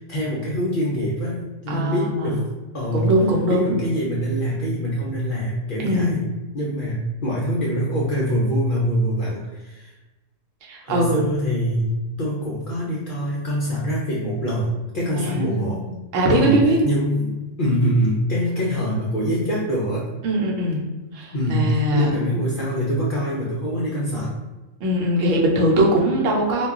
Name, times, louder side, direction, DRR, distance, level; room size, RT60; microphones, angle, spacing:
voice 1, 0.0-2.5 2.7-3.1 3.5-6.3 6.5-9.9 10.8-15.8 16.2-20.1 21.3-24.4, equal, 65° left, -5 dB, 0.5 m, -24 dB
voice 2, 1.7-2.3 2.9-3.8 5.8-6.2 10.7-11.2 15.2-15.8 16.1-16.8 20.2-20.8 21.1-22.1 24.8-26.7, right 1 dB, 75° right, -1 dB, 1.0 m, -21 dB
2.3 x 2.3 x 3.5 m, 1.1 s
omnidirectional pair, 1.4 m